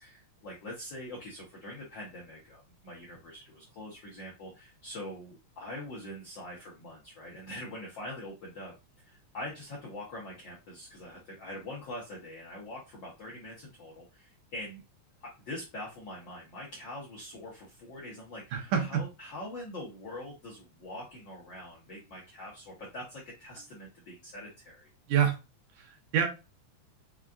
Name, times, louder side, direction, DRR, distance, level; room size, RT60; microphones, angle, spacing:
voice 1, 0.0-14.8 15.2-24.9, left 1 dB, 70° left, 1.1 m, -44 dB
voice 2, 18.5-19.0 25.1-25.4 25.8-26.3, right 8 dB, 85° right, 2.4 m, -27 dB
5.6 x 2.3 x 2.4 m
omnidirectional pair, 3.4 m